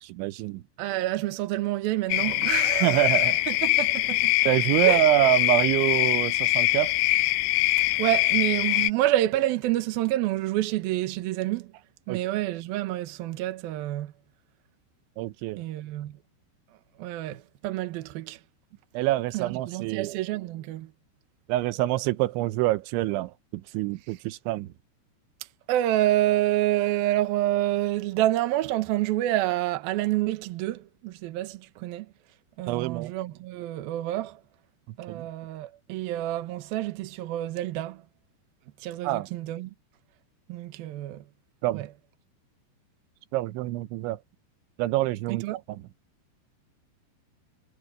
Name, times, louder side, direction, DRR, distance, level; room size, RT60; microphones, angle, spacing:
voice 1, 0.0-0.6 2.8-3.4 4.5-6.9 12.1-12.2 15.2-15.6 18.9-20.1 21.5-24.7 32.7-33.1 35.1-35.3 39.0-39.3 41.6-41.9 43.3-44.2 44.8-45.8, right 16 dB, 90° right, 3.2 m, -26 dB
voice 2, 0.8-3.1 3.5-4.3 4.8-5.0 7.8-11.7 12.1-14.1 15.6-16.2 17.0-18.4 19.3-20.9 25.7-32.1 32.6-34.4 35.0-38.0 38.8-39.7 40.5-41.2 41.7-41.9 45.3-45.6, right 15 dB, 65° right, 2.6 m, -28 dB
sound 1, 2.1-8.9, left 19 dB, 80° left, 2.9 m, -23 dB
omnidirectional pair, 5.3 m